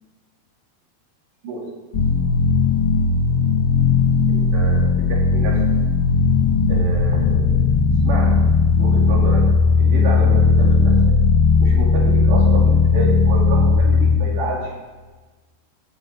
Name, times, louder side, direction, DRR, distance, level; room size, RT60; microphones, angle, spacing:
sound 1, 1.9-14.1, left 4 dB, 90° left, 0.9 m, -16 dB
voice 1, 4.3-4.8 5.1-5.6 6.7-7.6 8.0-8.5 8.8-11.1 11.6-14.7, right 3 dB, 75° right, -2 dB, 5.0 m, -29 dB
14.0 x 6.8 x 8.7 m, 1.3 s
omnidirectional pair, 4.9 m